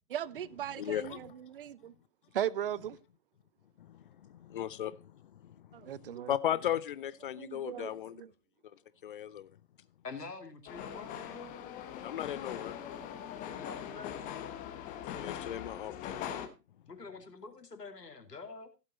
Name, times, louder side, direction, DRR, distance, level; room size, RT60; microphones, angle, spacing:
voice 1, 0.1-1.2 1.5-1.9 2.3-3.0 5.7-6.3 7.4-7.9 11.4-11.5, right 10 dB, 35° right, 0.5 m, -37 dB
voice 2, 0.7-1.3 3.8-8.2 8.6-9.6 12.0-12.8 15.0-16.1, left 10 dB, 35° left, 0.7 m, -37 dB
voice 3, 10.0-11.4 13.5-14.2 16.9-18.7, left 4 dB, 75° left, 2.6 m, -46 dB
sound 1, 10.7-16.5, left 9 dB, 15° left, 1.1 m, -41 dB
16.0 x 7.5 x 4.0 m
figure-of-eight pair, 120°, 48 cm